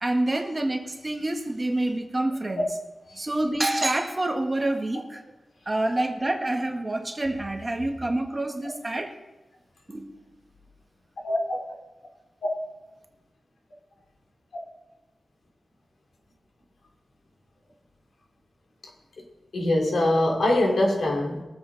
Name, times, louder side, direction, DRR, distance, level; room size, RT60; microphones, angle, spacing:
voice 1, 0.0-2.7 3.2-5.2 5.7-9.2 9.9-10.1, right 1 dB, 25° right, 3 dB, 1.5 m, -27 dB
voice 2, 11.2-11.6 19.5-21.4, left 1 dB, 80° left, -1 dB, 2.9 m, -23 dB
21.0 x 7.9 x 4.0 m, 1.1 s
wide cardioid pair, 95°, 0 cm